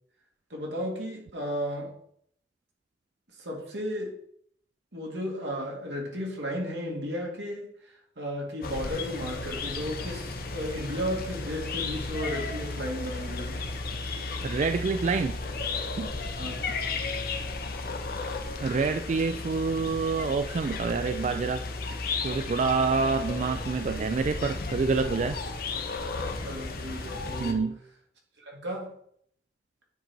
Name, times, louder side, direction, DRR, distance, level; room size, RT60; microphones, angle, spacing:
voice 1, 0.5-2.0 3.3-4.2 4.9-13.7 16.4-16.6 26.4-27.7 28.4-28.9, equal, 85° right, 2.1 m, -34 dB
sound 1, 8.6-27.5, left 3 dB, 55° left, 0.9 m, -34 dB
voice 2, 14.4-15.4 16.0-16.1 18.6-21.6 22.2-25.4 27.4-27.8, right 4 dB, 40° right, 0.3 m, -27 dB
9.3 x 3.9 x 4.4 m
head